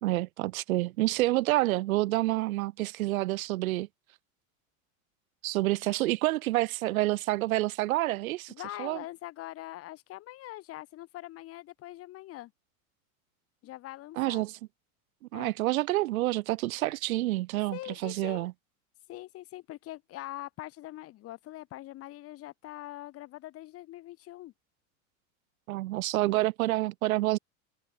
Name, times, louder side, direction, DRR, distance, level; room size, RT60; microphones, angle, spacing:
voice 1, 0.0-3.9 5.4-8.5 8.8-9.0 14.2-14.5 15.3-18.5 25.7-27.4, right 17 dB, 80° right, 2.0 m, -28 dB
voice 2, 8.5-12.5 13.6-14.4 15.3-15.5 17.7-18.5 19.1-24.5, left 15 dB, 35° left, 6.0 m, -43 dB
supercardioid pair, 160°, 41 cm